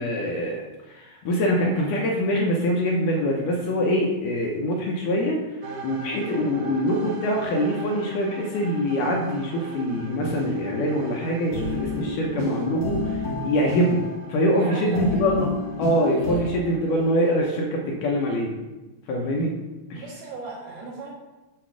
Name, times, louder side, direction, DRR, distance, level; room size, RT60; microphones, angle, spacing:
voice 1, 0.0-5.4 5.8-14.0 14.3-15.5 15.8-18.5 19.1-19.5 19.9-20.0, equal, 75° left, -1 dB, 2.1 m, -24 dB
sound 1, 5.6-17.4, right 4 dB, 65° right, 2.3 m, -41 dB
sound 2, 9.9-16.4, left 2 dB, 55° left, 2.0 m, -31 dB
voice 2, 14.5-15.4 16.0-16.9 20.0-21.2, right 2 dB, 90° right, -6 dB, 3.4 m, -38 dB
7.9 x 3.7 x 6.1 m, 1.1 s
omnidirectional pair, 4.4 m